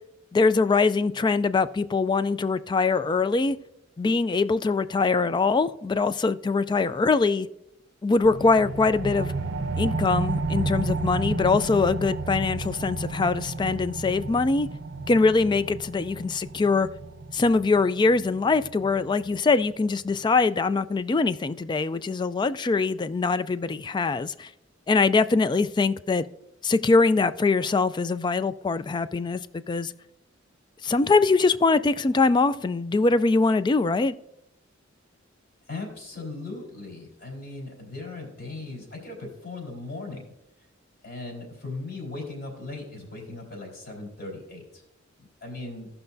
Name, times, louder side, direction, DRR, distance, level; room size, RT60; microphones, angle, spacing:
voice 1, 0.3-3.6 4.0-7.5 8.0-9.3 9.7-14.7 15.1-16.9 17.3-24.5 24.9-26.2 26.6-29.9 30.8-34.2, left 4 dB, 25° left, 0.3 m, -23 dB
sound 1, 8.2-19.3, right 3 dB, 70° right, 0.6 m, -32 dB
voice 2, 35.7-40.3 41.0-44.8 45.2-45.9, left 3 dB, 60° left, 3.8 m, -38 dB
16.5 x 5.7 x 2.7 m
head